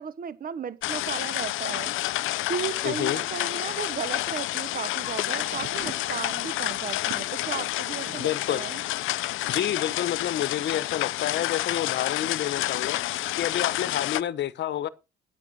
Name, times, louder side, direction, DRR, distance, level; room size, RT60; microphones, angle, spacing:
voice 1, 0.0-8.8, right 7 dB, 45° right, 1.1 m, -35 dB
sound 1, 0.8-14.2, left 16 dB, 85° left, 0.5 m, -29 dB
voice 2, 2.8-3.2 8.2-8.6 9.5-14.9, left 10 dB, 60° left, 0.9 m, -29 dB
sound 2, 5.3-8.3 8.8-10.0 11.0-11.1, right 10 dB, 65° right, 1.1 m, -46 dB
9.8 x 9.0 x 6.2 m
cardioid pair, 90°, 20 cm